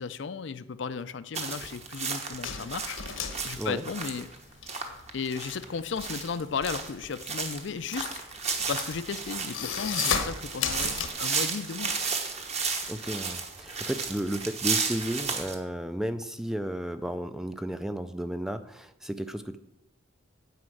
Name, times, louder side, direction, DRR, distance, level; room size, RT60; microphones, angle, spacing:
voice 1, 0.0-3.0 3.4-4.3 5.1-8.2 8.7-11.9, left 5 dB, 60° left, 14 dB, 0.4 m, -34 dB
sound 1, 1.3-15.6, right 5 dB, 30° right, 1.2 m, -33 dB
sound 2, 2.4-4.7 5.0-11.1, left 7 dB, 85° left, 1.1 m, -34 dB
voice 2, 12.9-19.6, equal, ahead, 10 dB, 0.4 m, -33 dB
9.5 x 4.9 x 7.7 m, 0.86 s
head